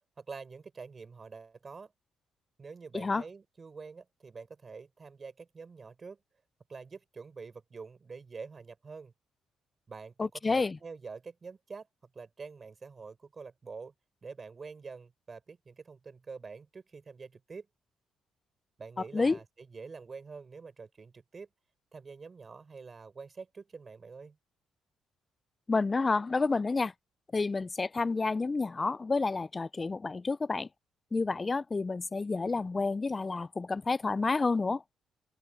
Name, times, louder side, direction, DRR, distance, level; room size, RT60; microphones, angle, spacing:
voice 1, 0.2-1.9 2.6-6.2 6.7-9.1 9.9-11.9 12.1-13.9 14.2-17.7 18.8-21.5 21.9-24.4, right 4 dB, 35° right, 5.3 m, -46 dB
voice 2, 10.2-10.8 19.1-19.4 25.7-26.9 27.3-30.7 31.1-34.8, left 3 dB, 25° left, 0.3 m, -29 dB
open air
cardioid pair, 90°, 0 cm